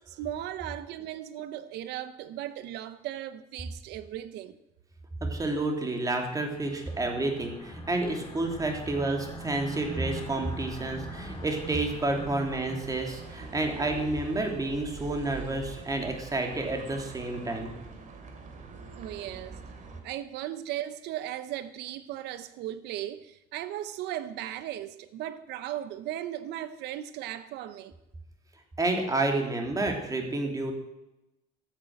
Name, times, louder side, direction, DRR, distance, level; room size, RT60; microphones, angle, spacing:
voice 1, 0.0-4.6 18.9-19.6 20.0-27.9, right 12 dB, 85° right, 0.8 m, -37 dB
voice 2, 5.2-17.7 28.8-30.7, right 2 dB, 20° right, 3.1 m, -30 dB
sound 1, 6.2-14.6, right 1 dB, 25° left, 2.6 m, -43 dB
sound 2, 10.4-20.0, right 4 dB, 50° right, 2.9 m, -45 dB
13.5 x 9.3 x 7.7 m
cardioid pair, 110°, 17 cm